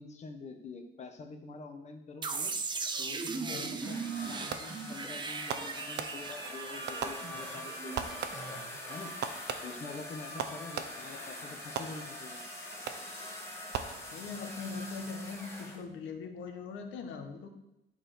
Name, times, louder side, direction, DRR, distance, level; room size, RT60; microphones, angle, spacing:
voice 1, 0.0-2.5 3.0-8.6 8.9-9.1 9.6-12.4, left 4 dB, 35° left, 4 dB, 1.2 m, -46 dB
sound 1, 2.2-9.0, right 4 dB, 25° right, 0.6 m, -38 dB
voice 2, 3.5-3.8 6.2-6.3 13.8-17.5, left 4 dB, 90° left, 6 dB, 1.3 m, -41 dB
sound 2, 3.8-15.8, left 1 dB, 15° left, 1.7 m, -44 dB
Fireworks, 4.5-4.9 5.5-6.5 6.9-7.6 7.9-8.7 9.2-11.2 11.8-12.4 12.9-13.3 13.7-14.5, right 7 dB, 65° right, 0.8 m, -40 dB
11.0 x 4.3 x 6.4 m, 0.86 s
cardioid pair, 170°, 19 cm